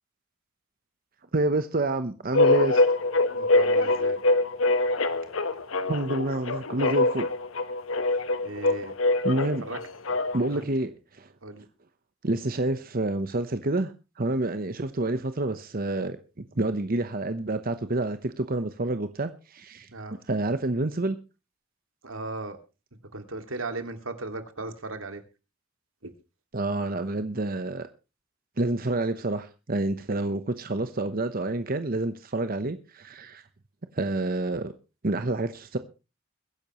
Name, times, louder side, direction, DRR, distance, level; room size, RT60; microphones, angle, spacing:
voice 1, 1.3-2.8 5.9-7.3 9.2-9.6 10.3-11.3 12.2-19.9 20.3-21.2 26.5-27.9 28.6-33.4 33.9-34.7 35.0-35.8, right 2 dB, 45° right, 1.0 m, -28 dB
sound 1, 2.3-10.6, left 2 dB, 85° left, 1.2 m, -24 dB
voice 2, 3.3-4.2 8.4-8.9 9.6-9.8 10.1-10.2 10.5-10.7 11.4-11.7 19.9-20.1 22.0-22.6 23.1-25.2 26.0-26.1, right 2 dB, 85° right, 2.4 m, -37 dB
22.5 x 10.5 x 3.1 m
head